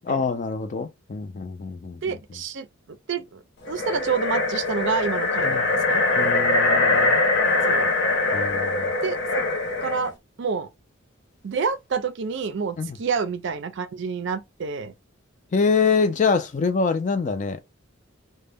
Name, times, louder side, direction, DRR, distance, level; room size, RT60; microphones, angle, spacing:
voice 1, 0.0-2.2 5.4-5.7 6.2-7.2 8.3-8.9 12.8-13.0 15.5-17.6, left 5 dB, 35° left, 0.4 m, -25 dB
voice 2, 2.0-3.4 3.7-6.0 7.7-7.9 9.0-9.4 9.8-10.1 10.4-10.7 11.4-14.9, right 5 dB, 60° right, 0.4 m, -28 dB
sound 1, 3.7-10.1, left 3 dB, 60° left, 0.7 m, -22 dB
2.1 x 2.0 x 3.4 m
head